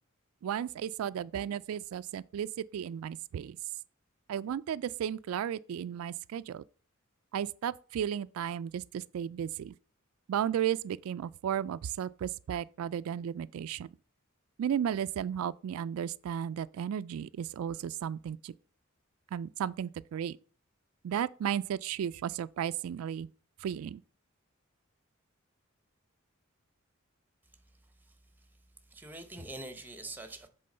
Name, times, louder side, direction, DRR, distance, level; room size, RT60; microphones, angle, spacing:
voice 1, 0.4-3.6 4.3-6.6 7.3-9.7 10.3-13.9 14.6-18.5 19.3-20.4 21.0-23.3 23.6-24.0, right 9 dB, 90° right, 0.3 m, -34 dB
voice 2, 28.9-30.5, right 2 dB, 10° right, 0.8 m, -44 dB
7.7 x 3.7 x 5.4 m
head